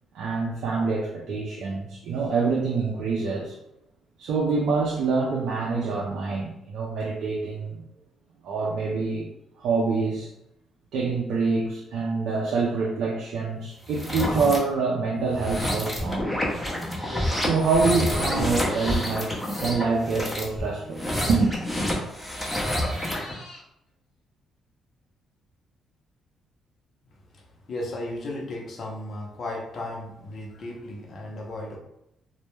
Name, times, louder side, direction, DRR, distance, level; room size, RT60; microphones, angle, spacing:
voice 1, 0.1-3.5 4.2-7.8 8.4-9.3 9.6-10.3 10.9-16.3 17.5-19.3 19.6-21.5, right 4 dB, 80° right, -3 dB, 0.4 m, -26 dB
sound 1, 13.8-14.6 15.3-23.3, left 1 dB, 10° left, 0.7 m, -28 dB
sound 2, 19.2-19.9 22.2-23.6, left 2 dB, 90° left, 0.7 m, -45 dB
voice 2, 27.3-31.8, left 1 dB, 50° left, -1 dB, 0.6 m, -35 dB
2.2 x 2.0 x 3.0 m, 0.81 s
cardioid pair, 90°, 0 cm